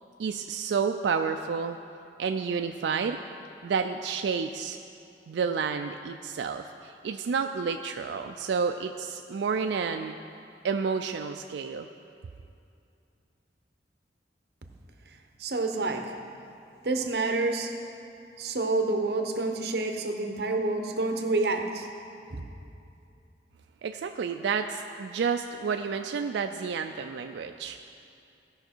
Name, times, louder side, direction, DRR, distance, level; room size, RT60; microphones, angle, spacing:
voice 1, 0.2-1.8 2.2-3.2 3.6-4.8 5.3-10.2 10.6-11.9 23.8-27.8, right 5 dB, 85° right, 6 dB, 0.4 m, -30 dB
voice 2, 15.1-16.2 16.8-17.7 18.4-21.9 22.3-22.4, right 2 dB, 65° right, 5 dB, 0.8 m, -28 dB
16.5 x 5.7 x 4.4 m, 2.6 s
head